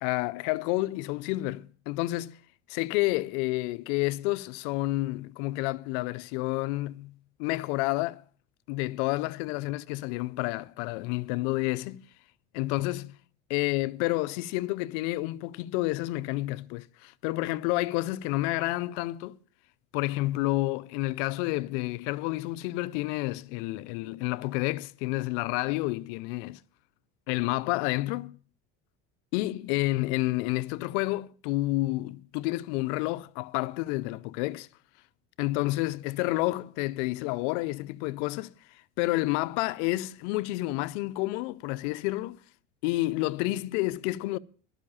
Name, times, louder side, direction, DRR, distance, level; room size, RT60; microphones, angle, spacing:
voice 1, 0.0-2.4 2.7-8.2 8.7-12.1 12.5-13.2 13.5-19.4 19.9-26.6 27.3-28.4 29.3-34.7 35.4-38.5 39.0-42.4 42.8-44.4, left 19 dB, 80° left, 0.6 m, -29 dB
12.0 x 5.7 x 8.6 m
supercardioid pair, 100°, 35 cm